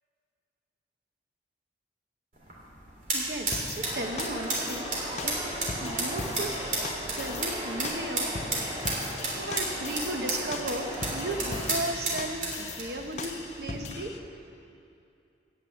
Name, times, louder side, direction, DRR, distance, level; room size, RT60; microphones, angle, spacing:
sound 1, 2.3-14.0, right 2 dB, 45° right, 3.1 m, -34 dB
voice 1, 3.1-4.9 5.2-5.4 5.8-6.5 7.1-8.3 8.9-9.0 9.3-14.1, right 1 dB, 65° right, 4 dB, 1.1 m, -35 dB
sound 2, 3.5-14.2, left 4 dB, 40° left, 0.6 m, -40 dB
sound 3, 3.8-11.7, equal, 25° right, 2.2 m, -38 dB
15.0 x 6.3 x 9.3 m, 2.6 s
head